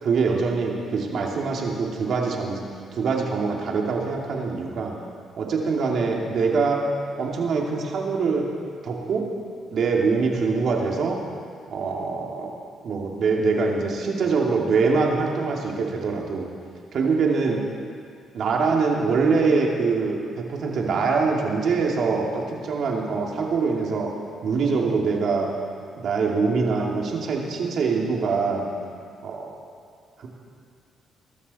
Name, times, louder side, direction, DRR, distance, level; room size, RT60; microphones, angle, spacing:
voice 1, 0.0-2.6 2.9-4.9 5.4-6.8 7.2-8.5 8.8-9.2 9.7-11.2 11.7-12.5 12.8-16.5 16.9-17.6 18.3-20.2 20.5-24.1 24.4-25.5 25.9-28.7 29.2-29.5 30.2-30.3, right 4 dB, 65° right, -1 dB, 2.4 m, -24 dB
20.0 x 12.5 x 4.2 m, 2.2 s
cardioid pair, 90°, 0 cm